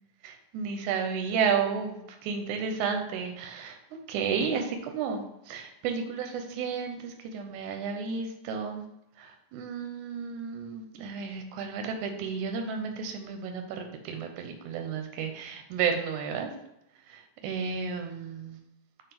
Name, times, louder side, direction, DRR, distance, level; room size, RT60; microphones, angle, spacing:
voice 1, 0.2-3.8 4.1-8.8 9.2-16.5 17.1-18.6, right 6 dB, 70° right, 5 dB, 2.0 m, -32 dB
5.6 x 3.7 x 5.9 m, 0.84 s
omnidirectional pair, 4.0 m